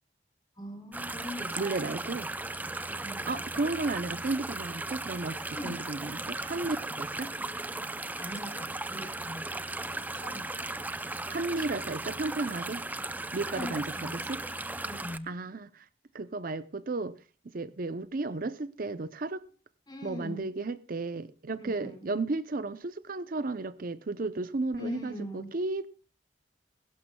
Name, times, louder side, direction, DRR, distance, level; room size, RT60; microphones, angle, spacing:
voice 1, 0.6-1.9 2.9-3.3 5.5-5.9 8.1-9.6 10.2-10.5 13.5-14.2 14.8-15.3 19.9-20.5 21.6-22.1 24.8-25.5, left 1 dB, 25° left, 4.2 m, -41 dB
sound 1, 0.9-15.2, right 2 dB, 10° right, 0.5 m, -36 dB
voice 2, 1.6-2.3 3.3-7.3 11.3-12.9 13.3-13.8 14.1-14.4 15.3-15.8 16.1-17.2 17.5-19.4 20.0-25.9, right 3 dB, 50° right, 0.6 m, -33 dB
22.0 x 11.5 x 2.3 m
head